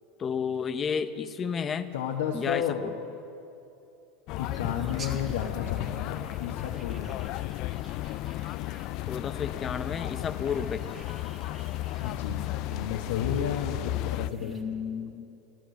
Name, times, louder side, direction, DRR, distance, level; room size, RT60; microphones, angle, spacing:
voice 1, 0.2-1.9 2.3-2.9 9.1-10.8 14.4-15.5, left 6 dB, 30° left, 11 dB, 0.7 m, -32 dB
voice 2, 1.9-2.8 4.4-7.4 12.0-14.6, left 8 dB, 90° left, 0 dB, 1.2 m, -33 dB
sound 1, 4.3-14.3, left 17 dB, 55° left, 0.3 m, -34 dB
sound 2, 4.4-14.6, right 3 dB, 25° right, 1.6 m, -52 dB
15.5 x 12.0 x 7.7 m, 2.8 s
supercardioid pair, 125°, 0 cm